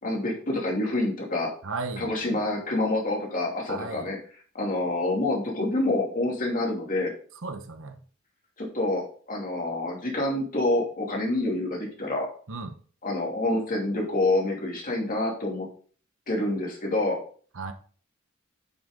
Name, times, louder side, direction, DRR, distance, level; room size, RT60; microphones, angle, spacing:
voice 1, 0.0-1.5 2.0-4.2 4.5-7.1 8.6-12.3 13.0-15.7 16.3-17.2, left 2 dB, 40° left, 2.8 m, -27 dB
voice 2, 1.6-2.4 3.7-4.1 7.4-8.0 12.5-12.7 17.5-17.7, right 3 dB, 65° right, 1.0 m, -35 dB
9.1 x 6.3 x 3.8 m
head